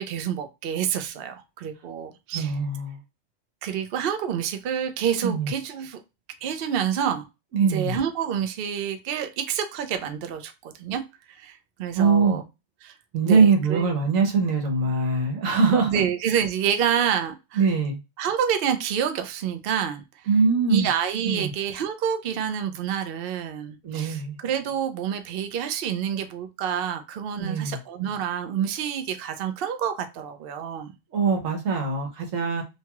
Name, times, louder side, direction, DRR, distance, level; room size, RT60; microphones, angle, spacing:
voice 1, 0.0-2.5 3.6-6.0 6.4-7.3 7.7-11.0 11.3-12.4 12.8-12.9 13.2-13.9 15.9-17.6 18.2-20.3 20.7-30.9, right 8 dB, 65° right, 7 dB, 0.6 m, -28 dB
voice 2, 2.3-3.0 5.2-5.5 7.5-8.0 11.9-12.4 13.1-16.0 17.6-18.0 20.3-20.9 21.2-21.5 23.8-24.4 27.4-27.8 31.1-32.6, right 4 dB, 85° right, 2 dB, 1.3 m, -22 dB
2.8 x 2.3 x 2.9 m, 0.25 s
omnidirectional pair, 1.3 m